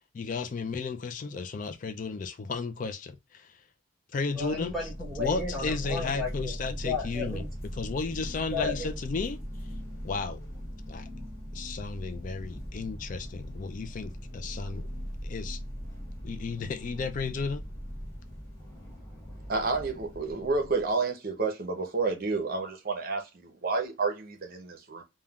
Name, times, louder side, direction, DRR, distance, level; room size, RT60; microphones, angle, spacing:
voice 1, 0.1-3.6 4.1-4.7 5.2-7.4 7.7-9.4 10.0-10.4 10.9-11.1 11.5-14.9 15.2-15.6 16.2-17.6, left 4 dB, 40° left, 0.3 m, -33 dB
sound 1, 4.3-20.9, equal, 15° left, 1.7 m, -40 dB
voice 2, 4.3-7.5 8.5-8.9 18.6-19.5, left 3 dB, ahead, 1.0 m, -35 dB
voice 3, 19.5-25.0, right 4 dB, 45° right, 0.6 m, -30 dB
3.5 x 2.2 x 2.3 m
head